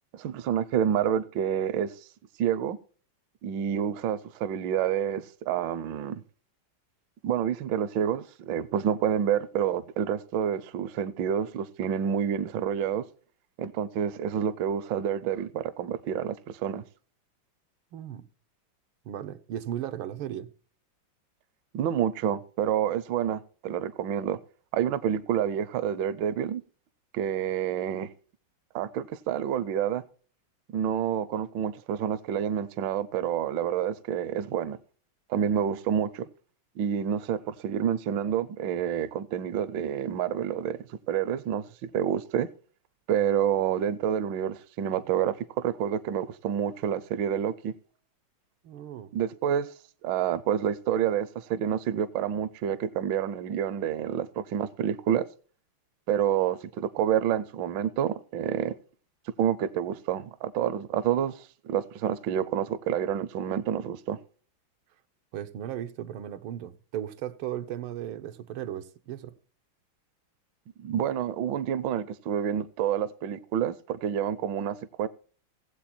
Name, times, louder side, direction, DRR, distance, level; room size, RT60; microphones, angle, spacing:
voice 1, 0.1-1.9 2.4-2.8 3.4-6.2 7.2-13.0 13.6-16.8 21.7-24.4 24.7-26.6 27.1-28.1 28.7-30.0 30.7-34.8 35.3-36.3 36.8-40.8 41.1-41.6 41.9-42.5 43.1-47.7 49.1-49.7 50.0-55.2 56.1-58.7 59.4-64.2 70.8-75.1, right 9 dB, 70° right, 1.3 m, -28 dB
voice 2, 17.9-18.3 19.1-20.5 48.6-49.1 65.3-69.4, right 11 dB, 90° right, 1.7 m, -36 dB
16.5 x 7.8 x 4.3 m
omnidirectional pair, 2.2 m